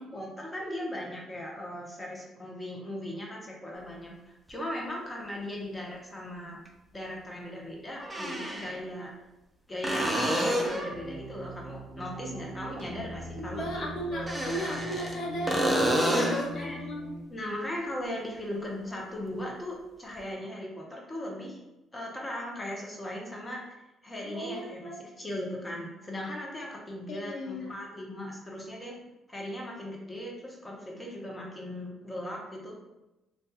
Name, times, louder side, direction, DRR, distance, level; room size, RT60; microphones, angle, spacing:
voice 1, 0.0-6.6 6.9-9.1 9.7-13.8 16.1-16.8 17.3-21.6 21.9-23.6 24.0-28.9 29.3-32.7, left 1 dB, 20° left, -2 dB, 0.8 m, -38 dB
sound 1, 4.5-4.6 6.7-6.8 8.0-8.8 9.8-11.0 14.1-15.2 15.5-16.5 20.2-20.3, equal, 5° right, 0.6 m, -28 dB
sound 2, 10.9-17.2, equal, 80° right, 0.3 m, -41 dB
voice 2, 13.4-17.1 24.2-25.1 27.1-27.7, equal, 60° left, -2 dB, 0.7 m, -36 dB
2.6 x 2.3 x 2.3 m, 0.99 s
supercardioid pair, 60°, 0 cm